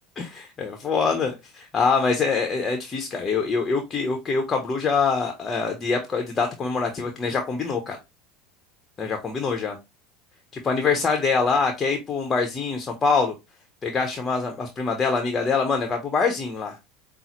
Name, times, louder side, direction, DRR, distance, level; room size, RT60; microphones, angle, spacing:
voice 1, 0.2-8.0 9.0-9.8 10.6-13.4 13.8-16.8, left 4 dB, 30° left, 4 dB, 0.8 m, -24 dB
5.4 x 2.0 x 2.9 m, 0.22 s
hypercardioid pair, 90°, 0 cm